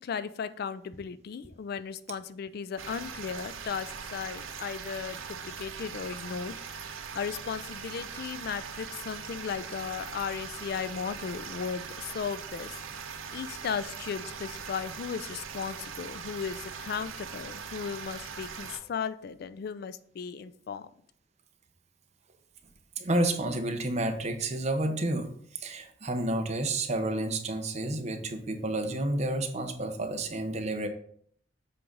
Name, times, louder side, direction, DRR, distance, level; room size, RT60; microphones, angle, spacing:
voice 1, 0.0-12.8 13.3-20.9, left 6 dB, 50° left, 13 dB, 0.3 m, -36 dB
sound 1, 2.8-18.8, right 6 dB, 90° right, 0.8 m, -41 dB
voice 2, 23.0-30.9, right 2 dB, 35° right, 5 dB, 0.9 m, -30 dB
7.6 x 3.7 x 5.3 m, 0.62 s
head